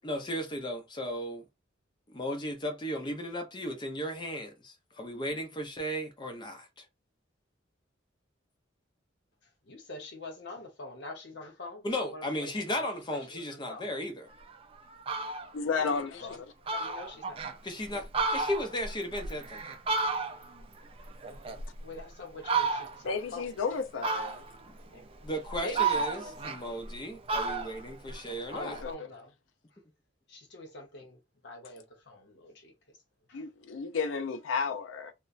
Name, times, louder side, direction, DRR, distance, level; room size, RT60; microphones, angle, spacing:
voice 1, 0.0-1.4 2.1-6.8 11.8-14.3 17.6-19.6 24.6-24.8 25.2-28.8, equal, 25° left, 0.6 m, -35 dB
voice 2, 9.6-12.8 13.3-13.9 15.7-16.4 16.6-17.4 17.9-18.0 21.3-23.5 24.9-25.0 25.6-26.5 28.5-29.3 30.3-33.0 33.3-33.4, left 2 dB, 60° left, 0.9 m, -45 dB
Fowl, 14.4-14.5 14.9-15.5 16.0-16.1 16.3-16.4 16.7-17.6 18.0-20.6 21.0-22.0 22.4-23.1 24.0-24.7 25.2-27.0 27.3-28.9, right 4 dB, 30° right, 0.4 m, -32 dB
voice 3, 15.5-16.4 23.0-24.4 28.6-29.1 33.3-35.1, left 5 dB, 85° left, 0.4 m, -33 dB
2.9 x 2.1 x 2.4 m
head